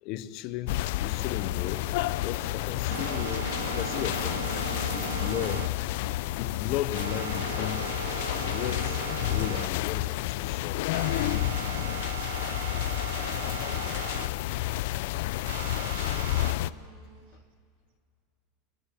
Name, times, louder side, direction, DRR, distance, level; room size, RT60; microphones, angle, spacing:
voice 1, 0.0-4.5 4.9-5.7 6.4-7.9 8.4-9.0 9.3-10.8 12.8-13.1 16.5-16.6, left 13 dB, 40° left, 1.0 m, -35 dB
sound 1, 0.7-16.7, left 16 dB, 55° left, 0.6 m, -30 dB
sound 2, 1.8-9.7 10.0-10.1 10.5-10.6 10.9-14.3 15.4-16.5, right 11 dB, 85° right, 0.9 m, -38 dB
voice 2, 13.4-14.2 14.8-15.0 15.6-17.5, right 7 dB, 55° right, 3.2 m, -56 dB
28.0 x 20.0 x 8.5 m
supercardioid pair, 175°, 0 cm